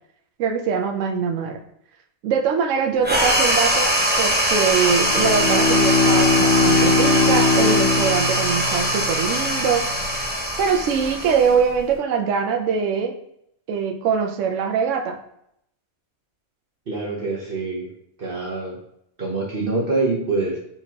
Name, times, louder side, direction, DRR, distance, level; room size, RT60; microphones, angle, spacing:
voice 1, 0.4-1.6 2.2-9.9 10.6-13.1 13.7-15.2, right 6 dB, 65° right, 5 dB, 0.9 m, -22 dB
sound 1, 3.0-11.9, right 1 dB, 10° right, 0.7 m, -22 dB
Bowed string instrument, 4.9-9.5, left 4 dB, 50° left, 1.0 m, -20 dB
voice 2, 16.9-17.9 18.2-18.8 19.2-20.6, right 3 dB, 45° right, -4 dB, 1.0 m, -25 dB
4.3 x 4.2 x 2.9 m, 0.76 s
omnidirectional pair, 1.5 m